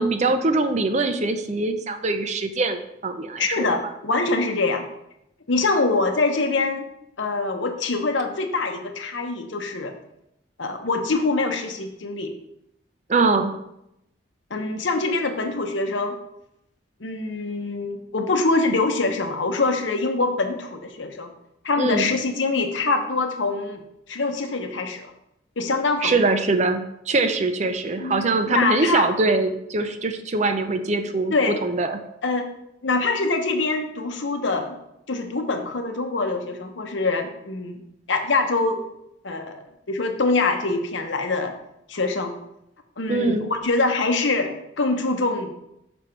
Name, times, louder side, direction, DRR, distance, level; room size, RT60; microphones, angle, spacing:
voice 1, 0.0-3.7 13.1-13.5 21.8-22.1 26.0-31.3 31.6-32.0 43.1-43.5, right 3 dB, 35° right, 8 dB, 0.5 m, -23 dB
voice 2, 3.4-4.8 5.5-6.9 7.2-9.9 10.6-12.3 14.5-16.2 17.0-21.3 21.6-23.8 24.1-25.1 25.6-26.2 28.0-29.1 31.3-31.6 32.2-32.5 32.8-34.8 35.1-37.8 38.1-38.8 39.2-41.5 41.9-42.3 43.0-45.5, left 3 dB, 75° left, 5 dB, 0.9 m, -24 dB
6.0 x 5.3 x 4.4 m, 0.82 s
head